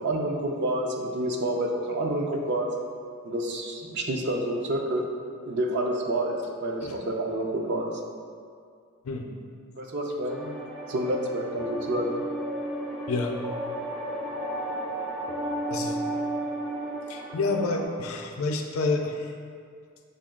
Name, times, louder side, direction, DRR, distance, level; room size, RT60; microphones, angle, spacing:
voice 1, 0.0-2.7 3.2-5.0 5.4-7.9 9.8-10.5 10.9-12.2, right 1 dB, 55° right, 2 dB, 0.5 m, -28 dB
sound 1, 10.3-17.8, right 1 dB, ahead, 0.4 m, -33 dB
voice 2, 15.7-16.0 17.1-19.3, left 3 dB, 70° left, 3 dB, 0.5 m, -29 dB
6.5 x 2.2 x 3.6 m, 2.2 s
head